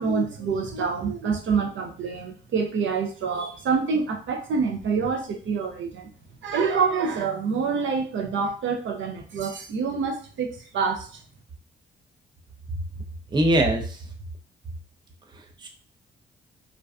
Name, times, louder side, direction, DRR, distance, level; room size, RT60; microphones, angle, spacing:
voice 1, 0.0-6.1 6.4-11.1, right 5 dB, 70° right, 3 dB, 0.5 m, -26 dB
voice 2, 13.3-14.1 15.3-15.7, right 1 dB, 20° right, 2 dB, 0.5 m, -23 dB
2.5 x 2.2 x 2.3 m, 0.39 s
cardioid pair, 85°, 20 cm